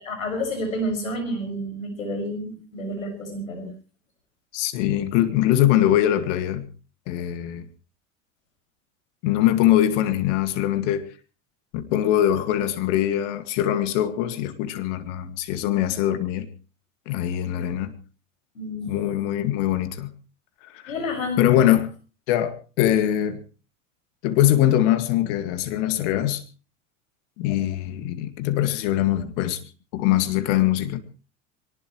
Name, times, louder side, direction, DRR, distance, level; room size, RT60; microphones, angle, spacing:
voice 1, 0.0-3.7 18.5-18.9 20.9-21.7, left 1 dB, 90° left, 6.4 m, -30 dB
voice 2, 4.5-6.7 7.1-7.7 9.2-11.0 11.7-16.5 17.1-17.9 18.9-20.1 20.8-20.9 21.4-21.9 22.3-23.4 24.2-26.4 27.4-29.6 29.9-31.0, left 12 dB, 65° left, 2.2 m, -22 dB
23.0 x 19.0 x 3.2 m
hypercardioid pair, 80°, 39 cm